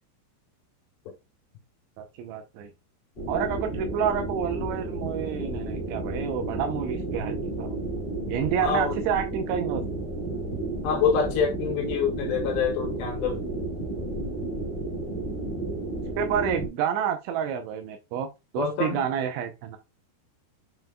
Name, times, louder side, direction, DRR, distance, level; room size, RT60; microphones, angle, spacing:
voice 1, 2.0-2.7 3.3-7.7 8.3-9.8 16.2-18.3 18.5-19.8, right 8 dB, 80° right, 3.0 m, -29 dB
sound 1, 3.2-16.7, right 2 dB, 35° left, 1.0 m, -32 dB
voice 2, 8.6-8.9 10.8-13.4 18.6-19.0, left 6 dB, 75° left, 3.1 m, -26 dB
9.2 x 4.5 x 2.2 m
omnidirectional pair, 5.5 m